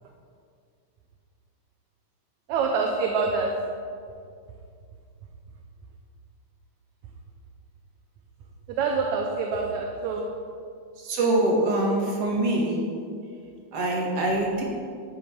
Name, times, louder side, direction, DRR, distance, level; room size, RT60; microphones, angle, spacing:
voice 1, 2.5-3.5 8.7-10.3, right 4 dB, 75° right, 1 dB, 2.1 m, -26 dB
voice 2, 11.0-12.9 13.7-14.6, right 1 dB, 55° right, -2 dB, 2.7 m, -24 dB
11.5 x 9.1 x 4.7 m, 2.3 s
omnidirectional pair, 3.5 m